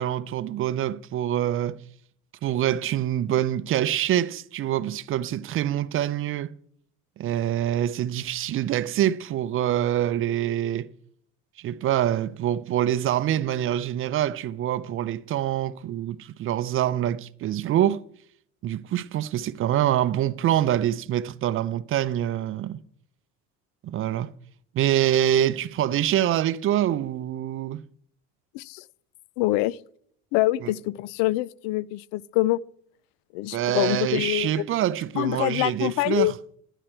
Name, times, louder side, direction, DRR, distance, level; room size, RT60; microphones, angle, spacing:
voice 1, 0.0-1.8 2.4-6.5 7.2-10.9 11.6-18.0 18.6-22.8 23.8-24.3 24.7-27.8 30.6-30.7 33.5-36.3, right 11 dB, 40° right, 0.5 m, -25 dB
voice 2, 29.4-29.8 30.3-32.6 33.3-34.6 35.2-36.3, left 17 dB, 80° left, 0.5 m, -25 dB
12.0 x 10.0 x 4.5 m
cardioid pair, 130°, 34 cm